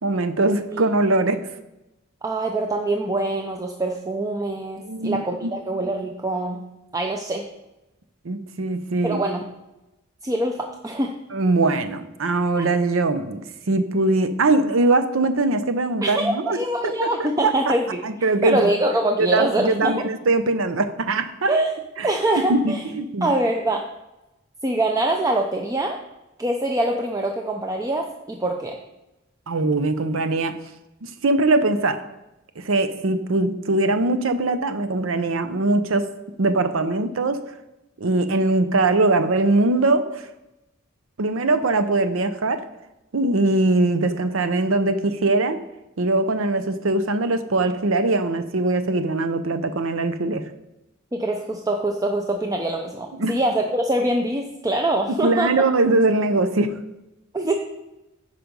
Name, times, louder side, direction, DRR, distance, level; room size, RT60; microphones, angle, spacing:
voice 1, 0.0-1.4 4.8-5.5 8.2-9.2 11.3-16.6 16.8-17.7 18.0-18.7 19.2-21.5 22.0-22.1 22.4-23.3 29.5-30.6 31.0-32.0 32.6-36.1 36.4-37.4 38.0-40.3 41.2-42.6 43.1-45.6 46.0-50.4 53.2-53.3 55.2-56.7, right 2 dB, 75° right, 10 dB, 0.7 m, -21 dB
voice 2, 2.2-6.6 6.9-7.4 9.0-9.4 10.2-11.1 12.6-12.7 16.0-18.0 18.4-20.1 21.5-21.7 22.0-22.8 23.2-23.8 24.6-26.0 26.4-28.8 51.1-55.5 57.3-57.5, right 1 dB, 15° right, 2 dB, 0.5 m, -24 dB
9.2 x 5.2 x 5.3 m, 0.95 s
head